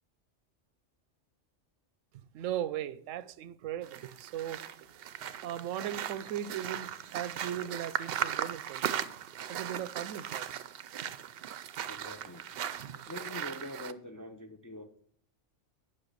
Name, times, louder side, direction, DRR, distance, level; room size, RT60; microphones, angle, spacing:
voice 1, 2.3-4.6 5.4-9.0 9.5-10.5, right 11 dB, 90° right, 1.0 m, -38 dB
sound 1, 3.8-13.9, right 10 dB, 60° right, 0.7 m, -38 dB
voice 2, 11.9-12.6 13.1-15.0, left 1 dB, 25° left, 0.4 m, -44 dB
8.9 x 5.9 x 6.6 m
omnidirectional pair, 1.3 m